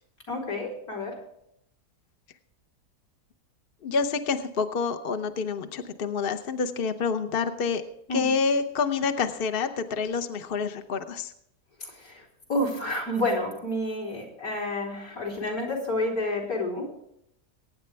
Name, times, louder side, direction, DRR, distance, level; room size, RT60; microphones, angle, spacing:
voice 1, 0.3-1.1 8.1-8.3 11.9-12.2 12.5-17.1, left 1 dB, 65° left, 1 dB, 4.0 m, -29 dB
voice 2, 3.8-7.8 8.1-11.3, left 5 dB, 45° left, 7 dB, 0.8 m, -27 dB
23.0 x 9.7 x 3.4 m, 0.74 s
omnidirectional pair, 1.7 m